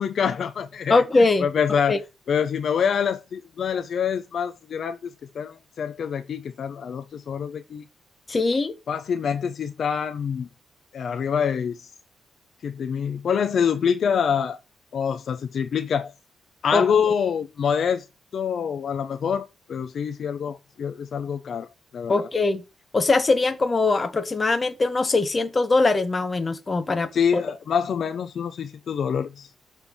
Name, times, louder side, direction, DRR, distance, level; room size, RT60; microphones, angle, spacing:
voice 1, 0.0-1.0 1.4-2.0 2.3-5.0 5.3-7.8 8.9-10.5 10.9-11.9 12.6-14.6 14.9-16.1 16.6-18.1 18.3-21.7 21.9-22.3 27.1-29.5, left 7 dB, 50° left, 0.5 m, -25 dB
voice 2, 0.9-1.5 1.9-2.0 8.3-8.8 16.7-16.8 22.1-22.6 22.9-27.4, left 3 dB, 25° left, 0.8 m, -21 dB
7.0 x 3.4 x 5.8 m
wide cardioid pair, 165°, 0 cm